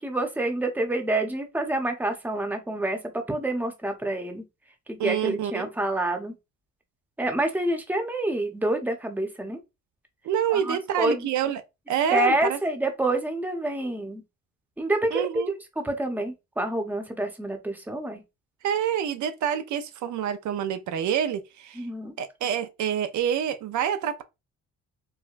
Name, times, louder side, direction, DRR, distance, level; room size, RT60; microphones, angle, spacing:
voice 1, 0.0-4.4 4.9-6.3 7.2-9.6 10.5-11.3 12.1-14.2 14.8-15.4 15.8-18.2 21.8-22.1, right 1 dB, 5° right, 0.8 m, -27 dB
voice 2, 5.0-5.7 10.2-11.6 11.9-12.6 15.1-15.6 18.6-21.9 22.2-24.2, right 9 dB, 75° right, 0.5 m, -27 dB
4.7 x 2.1 x 2.5 m
cardioid pair, 90°, 30 cm